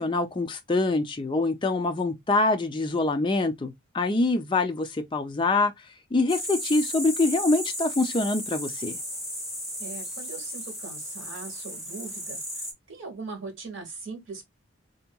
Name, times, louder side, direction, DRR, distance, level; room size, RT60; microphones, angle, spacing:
voice 1, 0.0-5.7 6.1-9.0, left 2 dB, 25° left, 0.4 m, -25 dB
sound 1, 6.3-12.7, equal, ahead, 0.8 m, -35 dB
voice 2, 9.8-12.4 12.9-14.5, right 4 dB, 60° right, 1.2 m, -40 dB
3.5 x 2.8 x 2.2 m
head